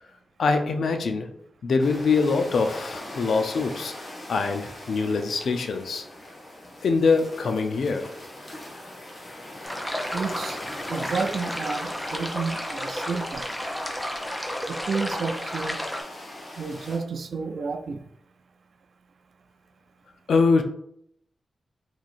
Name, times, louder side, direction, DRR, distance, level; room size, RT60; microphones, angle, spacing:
voice 1, 0.4-1.3 1.6-3.9 4.3-6.0 6.8-8.1 20.3-20.6, left 4 dB, 70° left, 6 dB, 0.4 m, -23 dB
sound 1, 1.8-17.0, left 1 dB, 35° left, 0.9 m, -41 dB
sound 2, 9.6-16.0, equal, 5° left, 0.5 m, -32 dB
voice 2, 10.1-10.6 10.9-13.5 14.7-15.8 16.6-18.0, right 5 dB, 60° right, 8 dB, 0.4 m, -31 dB
3.0 x 2.6 x 4.0 m, 0.72 s
wide cardioid pair, 145°, 0 cm